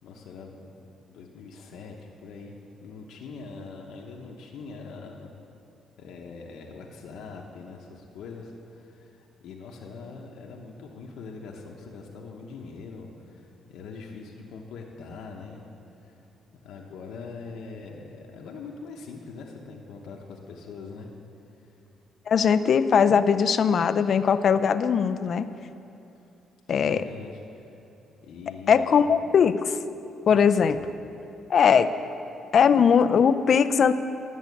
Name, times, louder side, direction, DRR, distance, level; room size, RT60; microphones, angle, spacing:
voice 1, 0.0-2.5 2.8-5.3 6.0-15.6 16.0-16.3 16.6-21.1 21.6-21.8 26.1-26.3 26.7-27.8 28.2-29.1 30.7-30.8, left 4 dB, 80° left, -1 dB, 1.0 m, -42 dB
voice 2, 22.3-25.5 26.7-27.0 28.7-29.8 30.3-30.8 31.5-31.9 32.5-33.9, left 7 dB, 55° left, 12 dB, 0.5 m, -20 dB
11.0 x 7.1 x 8.3 m, 2.7 s
cardioid pair, 90°, 0 cm